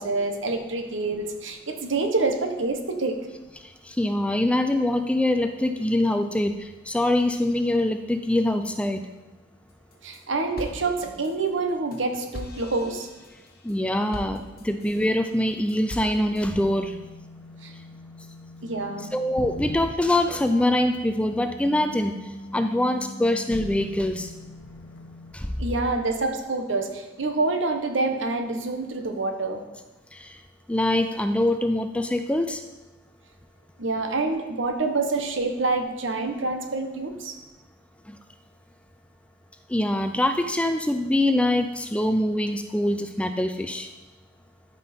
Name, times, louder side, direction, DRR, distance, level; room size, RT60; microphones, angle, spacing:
voice 1, 0.0-3.2 10.0-13.1 17.6-17.7 18.6-19.1 25.6-29.6 33.8-37.4, right 3 dB, 75° right, 5 dB, 1.0 m, -27 dB
voice 2, 3.8-9.1 13.6-17.0 19.1-22.2 22.5-24.3 25.3-25.5 30.1-30.4 30.7-32.6 38.1-38.2 39.7-43.9, left 1 dB, 5° left, 8 dB, 0.3 m, -24 dB
sound 1, 9.7-10.2 10.6-15.1 15.5-16.4, left 1 dB, 50° left, 1.2 m, -41 dB
sound 2, 16.5-25.3, left 1 dB, 75° left, 1.0 m, -43 dB
12.5 x 5.3 x 4.3 m, 1.2 s
head